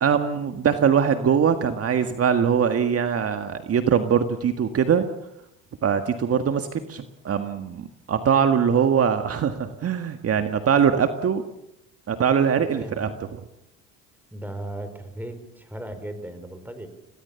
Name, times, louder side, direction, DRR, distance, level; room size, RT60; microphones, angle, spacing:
voice 1, 0.0-5.1 5.8-11.4 12.1-13.4, right 7 dB, 45° right, 8 dB, 1.8 m, -22 dB
voice 2, 12.6-13.2 14.3-16.9, right 1 dB, 5° right, 9 dB, 4.5 m, -37 dB
26.5 x 17.5 x 7.1 m, 0.85 s
supercardioid pair, 90°, 34 cm